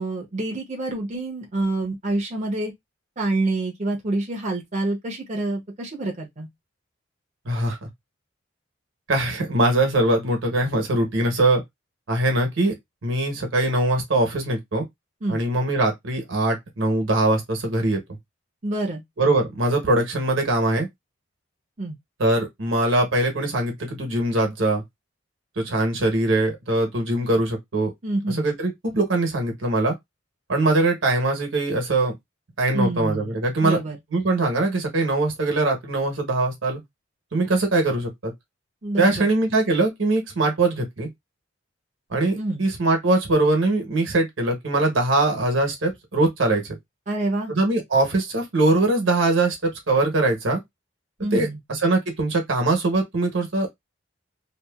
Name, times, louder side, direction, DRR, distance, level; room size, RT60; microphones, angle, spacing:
voice 1, 0.0-2.7 3.2-6.5 15.2-15.4 18.6-19.0 21.8-22.0 28.0-28.4 32.7-34.0 38.8-39.2 42.4-42.7 47.1-47.5 51.2-51.6, right 2 dB, 35° right, 0.7 m, -27 dB
voice 2, 7.5-7.9 9.1-11.6 12.1-12.7 13.0-14.9 15.3-18.0 19.2-20.9 22.2-24.8 25.6-27.9 28.3-29.9 30.5-32.1 32.6-33.8 34.1-36.8 37.3-38.3 39.0-41.1 42.1-46.6 47.5-50.6 51.3-53.7, right 2 dB, 75° right, 1.1 m, -22 dB
2.8 x 2.3 x 2.3 m
head